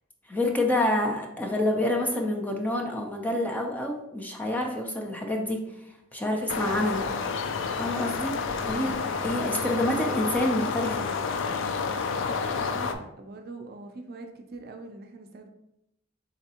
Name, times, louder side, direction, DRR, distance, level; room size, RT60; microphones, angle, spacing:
voice 1, 0.3-5.6 6.1-7.0 7.8-8.3 8.7-8.9 9.2-11.1, left 1 dB, 10° left, 0 dB, 0.5 m, -27 dB
sound 1, 6.5-12.9, left 5 dB, 65° left, 0.4 m, -29 dB
voice 2, 8.6-9.0 12.2-15.5, right 3 dB, 50° right, 4 dB, 0.5 m, -43 dB
3.9 x 3.4 x 2.8 m, 0.83 s
head